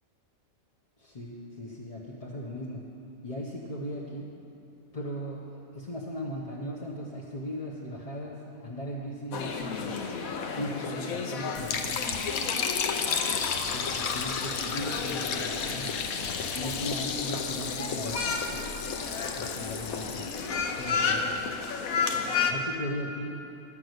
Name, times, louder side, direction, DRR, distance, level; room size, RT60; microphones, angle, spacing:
voice 1, 1.0-2.8 3.2-4.3 4.9-10.1 10.5-12.0 13.7-16.0 16.5-19.0 19.4-20.3 20.8-21.3 22.5-23.4, equal, 30° left, -5 dB, 0.9 m, -38 dB
sound 1, 9.3-22.5, left 5 dB, 80° left, 1.2 m, -33 dB
Liquid, 11.5-21.7, left 6 dB, 60° left, 0.9 m, -33 dB
11.5 x 6.0 x 8.0 m, 2.9 s
omnidirectional pair, 1.5 m